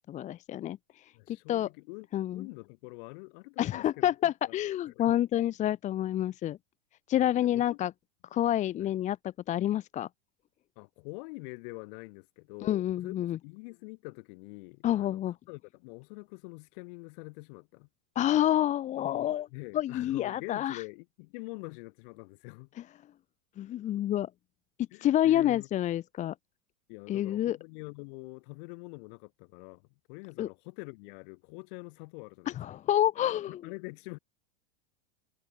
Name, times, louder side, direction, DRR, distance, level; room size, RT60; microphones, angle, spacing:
voice 1, 0.1-1.7 2.1-2.5 3.6-6.6 7.1-7.9 8.3-10.1 12.6-13.4 14.8-15.3 18.1-19.5 19.7-20.8 23.6-24.3 24.8-26.3 27.1-27.6 30.4-30.5 32.6-33.6, left 12 dB, 20° left, 1.1 m, -28 dB
voice 2, 1.1-4.6 4.8-5.2 7.4-7.8 8.8-8.9 10.8-17.9 19.5-22.7 24.9-25.7 26.9-32.8 33.5-34.2, left 32 dB, 45° left, 4.2 m, -45 dB
supercardioid pair, 170°, 36 cm